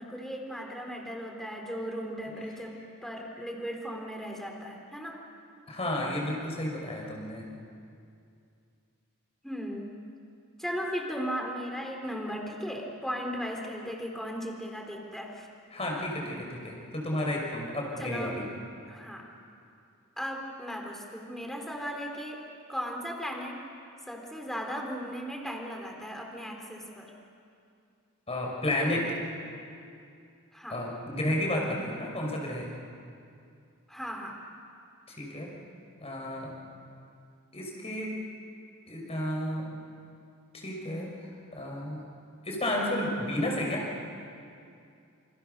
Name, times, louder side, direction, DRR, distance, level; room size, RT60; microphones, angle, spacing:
voice 1, 0.0-2.7 3.0-5.2 9.4-9.9 10.6-15.5 18.0-18.3 18.9-19.2 20.2-22.4 22.7-23.6 24.1-27.1 30.5-30.8 33.9-34.4, equal, ahead, 1 dB, 4.0 m, -36 dB
voice 2, 5.7-7.5 15.7-18.4 28.3-29.2 30.7-32.7 35.1-35.5 36.0-36.5 37.5-38.1 38.9-39.8 40.5-42.0 42.4-43.9, left 1 dB, 30° left, -1 dB, 6.0 m, -32 dB
29.0 x 29.0 x 6.9 m, 2.5 s
head